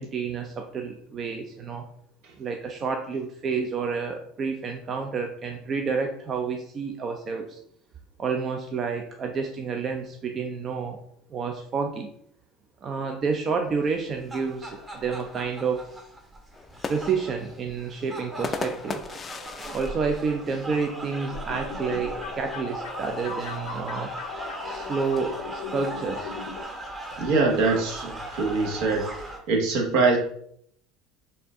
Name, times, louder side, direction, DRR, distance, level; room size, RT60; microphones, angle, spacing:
voice 1, 0.0-1.8 2.4-7.6 8.2-11.0 11.3-12.1 12.8-15.9 16.9-19.0 19.7-24.1 24.6-26.3, right 5 dB, 40° right, 3 dB, 0.5 m, -29 dB
sound 1, 13.9-29.4, right 1 dB, 25° right, 1.0 m, -38 dB
sound 2, 16.5-21.2 21.6-21.7 22.0-22.4 23.3-24.8, left 5 dB, 30° left, 0.4 m, -38 dB
sound 3, 21.5-26.6, left 7 dB, 80° left, 0.6 m, -38 dB
voice 2, 27.2-29.1 29.5-30.2, right 3 dB, 70° right, 1 dB, 1.1 m, -23 dB
4.3 x 2.5 x 3.6 m, 0.66 s
supercardioid pair, 95°, 0 cm